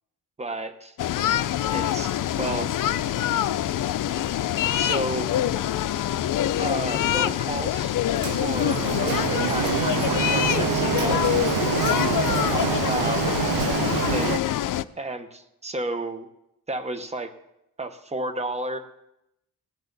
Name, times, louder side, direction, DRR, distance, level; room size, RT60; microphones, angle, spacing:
voice 1, 0.4-0.9 1.7-2.1 2.4-2.7 4.6-5.3 6.6-7.9 8.4-11.2 12.8-13.3 14.1-14.4 15.0-16.3 16.7-17.3 17.8-18.8, right 2 dB, 20° right, 8 dB, 1.1 m, -32 dB
sound 1, 1.0-14.8, left 12 dB, 65° left, 0.5 m, -25 dB
Printer, 8.2-14.4, right 12 dB, 80° right, 0.6 m, -26 dB
18.5 x 10.0 x 4.0 m, 0.84 s
wide cardioid pair, 145°, 36 cm